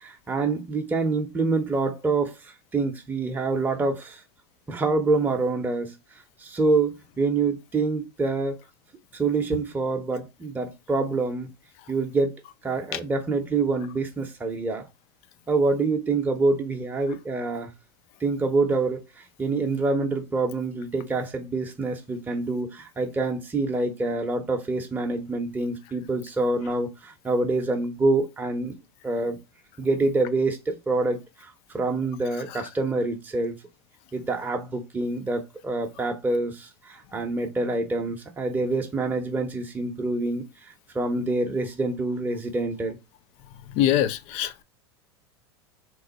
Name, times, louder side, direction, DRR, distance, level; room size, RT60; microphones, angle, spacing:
voice 1, 0.0-4.2 4.7-5.9 6.4-8.6 9.1-11.5 11.9-12.3 12.6-14.9 15.5-17.7 18.2-28.7 29.0-29.4 29.8-33.6 34.1-43.0, right 3 dB, 15° right, 0.7 m, -26 dB
voice 2, 43.7-44.6, left 11 dB, 50° left, 0.4 m, -23 dB
3.0 x 2.0 x 4.0 m
hypercardioid pair, 95°, 14 cm